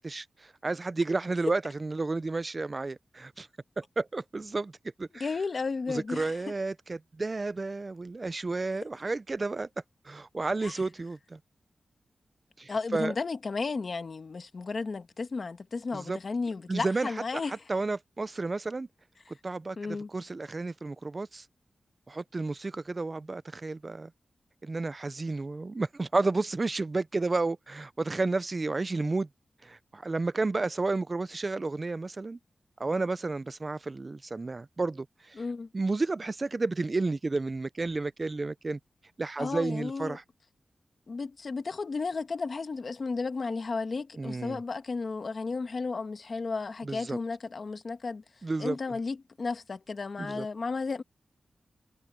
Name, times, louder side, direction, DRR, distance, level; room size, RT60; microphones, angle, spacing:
voice 1, 0.0-3.5 3.8-4.7 5.0-5.3 5.9-9.7 10.1-11.4 12.6-13.1 15.9-16.2 16.7-17.1 17.5-18.9 19.3-21.5 22.1-24.1 24.6-29.3 29.6-32.4 32.8-35.4 35.7-38.8 39.2-40.2 44.2-44.6 46.8-47.2 48.4-48.8 50.2-50.5, right 3 dB, 30° right, 0.3 m, -31 dB
voice 2, 5.2-6.4 10.6-10.8 12.7-17.6 19.8-20.1 35.4-35.7 39.4-40.2 41.1-48.2 48.6-51.0, left 4 dB, 45° left, 1.3 m, -33 dB
wide cardioid pair, 180°, 0 cm